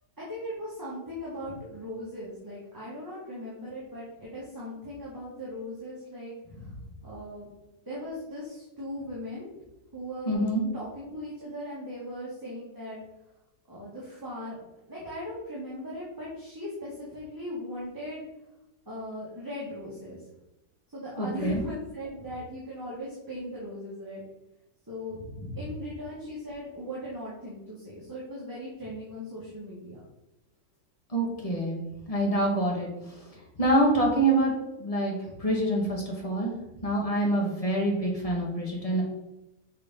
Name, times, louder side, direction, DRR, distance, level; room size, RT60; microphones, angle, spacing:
voice 1, 0.2-6.3 7.0-7.5 7.9-9.5 9.9-10.4 10.7-13.0 13.7-14.6 14.9-18.2 18.9-20.2 20.9-24.2 24.9-25.2 25.6-30.0, left 1 dB, 10° right, -7 dB, 2.0 m, -38 dB
voice 2, 10.3-10.6 21.2-21.6 25.4-25.6 31.1-33.3 33.6-36.5 36.8-39.0, right 1 dB, 20° left, -2 dB, 2.0 m, -26 dB
6.6 x 4.7 x 5.7 m, 0.94 s
omnidirectional pair, 1.8 m